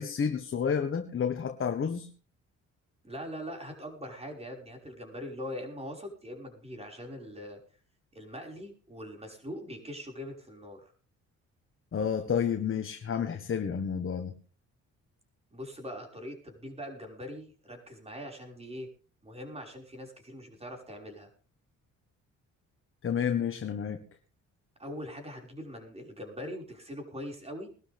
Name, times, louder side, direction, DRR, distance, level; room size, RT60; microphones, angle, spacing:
voice 1, 0.0-2.1 11.9-14.3 23.0-24.0, left 7 dB, 45° left, 1.5 m, -30 dB
voice 2, 3.0-7.6 8.1-10.9 15.5-18.9 19.2-21.3 24.8-27.7, equal, 20° right, 5.7 m, -42 dB
21.0 x 12.5 x 3.6 m
cardioid pair, 90°, 30 cm